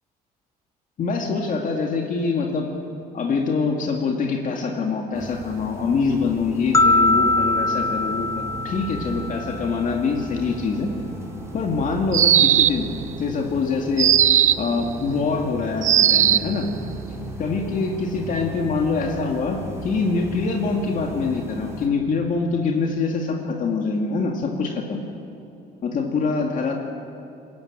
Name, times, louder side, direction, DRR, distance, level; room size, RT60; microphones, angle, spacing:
voice 1, 1.0-2.7 3.1-10.9 11.5-12.9 13.2-14.1 14.6-16.7 17.4-25.0 25.8-26.7, left 4 dB, 50° left, 1 dB, 2.2 m, -24 dB
sound 1, 5.1-21.9, right 1 dB, 15° right, 4.5 m, -37 dB
sound 2, 6.7-9.9, left 2 dB, 20° left, 0.7 m, -22 dB
sound 3, 12.1-12.9 14.0-14.7 15.8-16.5, right 10 dB, 45° right, 0.5 m, -17 dB
22.0 x 14.0 x 8.8 m, 2.7 s
cardioid pair, 110°, 17 cm